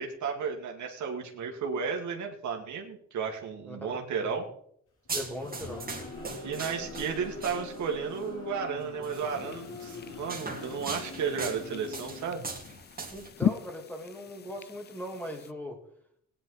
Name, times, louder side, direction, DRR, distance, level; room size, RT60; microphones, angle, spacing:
voice 1, 0.0-4.5 6.4-12.5, right 6 dB, 70° right, 2 dB, 1.9 m, -33 dB
voice 2, 3.7-4.3 5.1-5.8 13.1-15.8, equal, 5° left, 2 dB, 2.7 m, -39 dB
sound 1, 5.0-12.8, left 3 dB, 60° left, 5.2 m, -44 dB
sound 2, 5.1-8.0 9.0-9.2 9.8-13.3, right 4 dB, 30° right, 2.6 m, -40 dB
sound 3, 9.1-15.5, left 9 dB, 35° left, 0.4 m, -38 dB
16.5 x 9.8 x 3.9 m, 0.66 s
cardioid pair, 90°, 30 cm